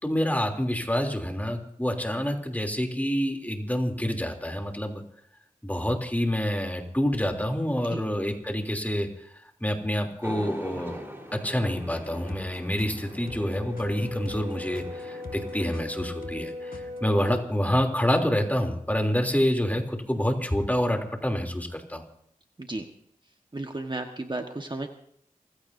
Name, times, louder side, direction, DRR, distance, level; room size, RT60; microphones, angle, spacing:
voice 1, 0.0-5.0 5.6-9.1 9.6-11.0 11.3-16.7 17.0-22.0, equal, 10° left, 3 dB, 3.1 m, -27 dB
sound 1, 10.2-15.7, equal, 15° right, 4.0 m, -43 dB
sound 2, 11.9-17.0, left 3 dB, 75° left, 1.7 m, -46 dB
Brass instrument, 13.1-17.4, left 2 dB, 60° right, 7.2 m, -39 dB
voice 2, 23.5-24.9, right 2 dB, 30° right, 4 dB, 1.3 m, -33 dB
29.0 x 16.0 x 2.7 m, 0.68 s
wide cardioid pair, 65°, 14 cm